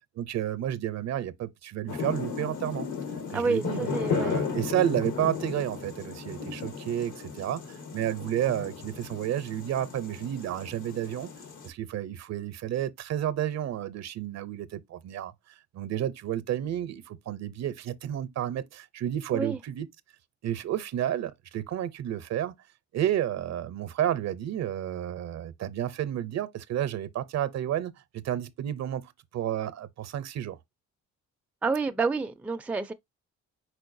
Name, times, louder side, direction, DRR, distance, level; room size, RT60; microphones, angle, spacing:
voice 1, 0.2-2.9 3.3-11.3 11.6-15.3 15.7-19.9 20.4-22.5 22.9-30.6, right 11 dB, 60° right, 0.6 m, -31 dB
sound 1, 1.9-11.7, left 5 dB, 80° left, 1.6 m, -35 dB
voice 2, 3.3-4.4 5.2-5.3 19.3-19.6 31.6-32.9, right 4 dB, 5° right, 0.4 m, -29 dB
4.6 x 4.3 x 2.5 m
cardioid pair, 90°, 30 cm